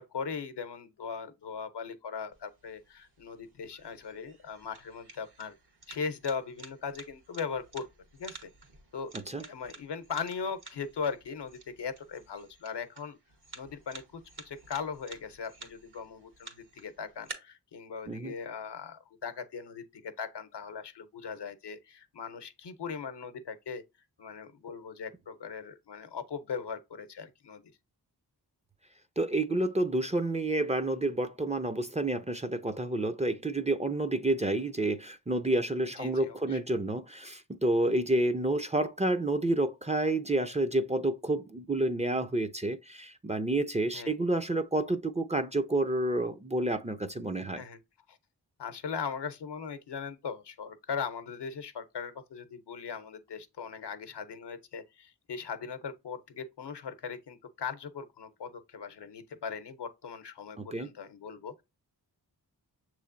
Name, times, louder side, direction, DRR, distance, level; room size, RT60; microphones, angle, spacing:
voice 1, 0.0-5.5 5.9-7.9 8.2-8.5 8.9-9.1 9.4-13.2 13.5-23.8 24.2-27.7 36.0-36.6 43.9-44.1 47.6-47.8 48.1-48.2 48.6-61.6, left 6 dB, 75° left, 0.8 m, -39 dB
sound 1, 2.3-17.3, right 4 dB, 65° right, 1.3 m, -51 dB
voice 2, 29.2-47.6 60.6-60.9, right 2 dB, 15° right, 0.5 m, -29 dB
6.5 x 3.1 x 2.5 m
cardioid pair, 45°, 42 cm